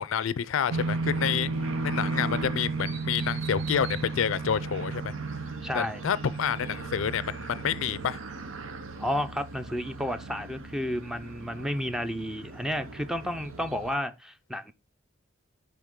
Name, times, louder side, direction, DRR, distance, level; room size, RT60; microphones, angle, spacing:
voice 1, 0.0-1.5 1.8-5.1 5.7-8.2, left 8 dB, 75° left, 0.4 m, -28 dB
sound 1, 0.7-13.9, right 3 dB, 80° right, 0.8 m, -34 dB
voice 2, 5.6-6.0 9.0-14.7, equal, 5° right, 0.5 m, -31 dB
10.0 x 3.4 x 3.6 m
head